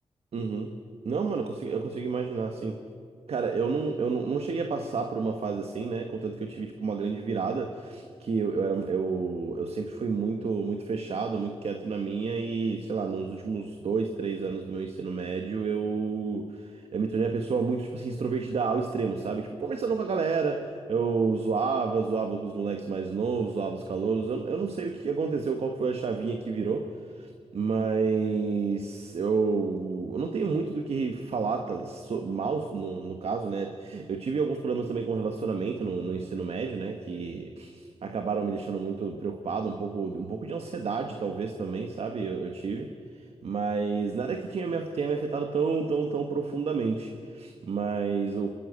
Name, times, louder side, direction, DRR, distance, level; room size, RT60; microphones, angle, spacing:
voice 1, 0.3-0.7 1.0-2.8 3.3-26.9 27.2-42.9 43.4-48.5, right 4 dB, 70° right, 5 dB, 1.5 m, -30 dB
27.5 x 13.5 x 8.2 m, 2.2 s
cardioid pair, 70°, 11 cm